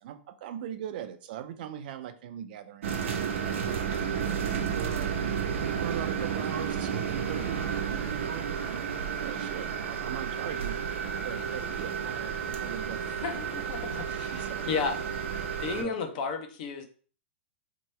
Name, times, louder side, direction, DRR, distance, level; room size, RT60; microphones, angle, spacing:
voice 1, 0.0-5.1 5.6-8.9 9.2-13.1 14.3-14.7 15.8-16.0, right 10 dB, 45° right, 10 dB, 0.5 m, -41 dB
sound 1, 2.8-15.8, right 7 dB, 80° right, 0.9 m, -32 dB
voice 2, 13.2-15.0 15.6-16.8, left 5 dB, 40° left, 6 dB, 0.7 m, -33 dB
4.4 x 2.9 x 3.2 m, 0.42 s
supercardioid pair, 165°, 7 cm